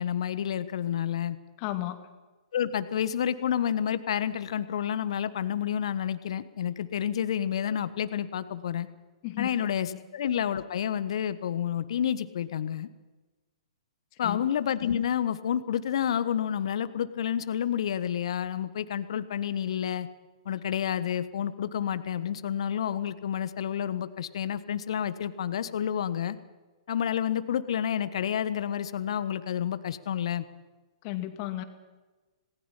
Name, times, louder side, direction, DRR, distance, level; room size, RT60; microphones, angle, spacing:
voice 1, 0.0-1.4 2.5-8.9 9.4-12.9 14.2-20.1 20.4-26.4 26.9-30.4, left 9 dB, 60° left, 14 dB, 1.3 m, -29 dB
voice 2, 1.6-2.0 9.2-10.0 14.2-14.4 31.0-31.6, left 15 dB, 40° left, 7 dB, 2.5 m, -34 dB
27.0 x 19.0 x 5.7 m, 1.2 s
figure-of-eight pair, 115°, 3 cm